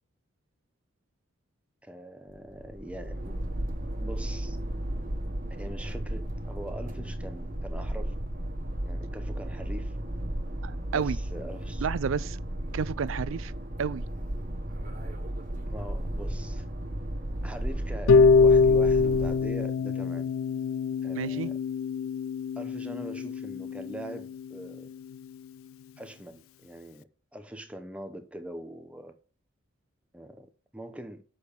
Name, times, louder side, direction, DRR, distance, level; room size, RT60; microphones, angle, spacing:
voice 1, 1.8-3.3 4.0-4.6 5.5-8.1 8.8-10.0 10.9-11.9 15.7-16.7 17.4-20.3 21.0-21.6 22.6-24.9 26.0-29.1 30.1-31.2, right 1 dB, 5° right, 0.8 m, -42 dB
sound 1, 2.3-19.6, right 1 dB, 40° right, 1.3 m, -34 dB
voice 2, 10.6-11.2 11.8-12.4 12.7-13.5 13.8-14.0 21.2-21.5, right 6 dB, 70° right, 0.4 m, -30 dB
Harp, 18.1-24.1, left 4 dB, 80° left, 0.4 m, -24 dB
6.6 x 5.4 x 6.5 m
head